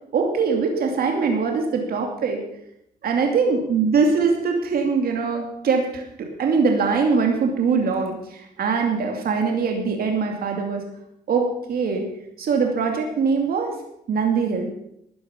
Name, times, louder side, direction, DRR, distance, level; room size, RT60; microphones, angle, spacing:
voice 1, 0.1-2.4 3.0-10.8 11.3-12.0 12.4-13.7 14.1-14.7, right 5 dB, 65° right, 2 dB, 2.6 m, -22 dB
13.5 x 9.8 x 6.9 m, 0.77 s
cardioid pair, 95°, 16 cm